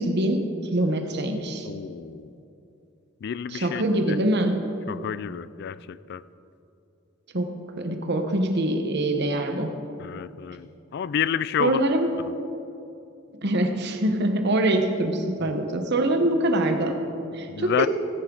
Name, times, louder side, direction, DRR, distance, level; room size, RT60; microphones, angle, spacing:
voice 1, 0.0-1.7 3.5-4.7 7.3-9.7 11.6-12.3 13.4-17.9, right 1 dB, 55° right, 5 dB, 1.1 m, -24 dB
voice 2, 1.6-2.3 3.2-4.2 4.9-6.2 10.0-11.8 12.2-12.3 15.4-15.5 17.5-17.9, left 8 dB, 55° left, 17 dB, 0.3 m, -30 dB
17.0 x 10.5 x 3.9 m, 2.7 s
head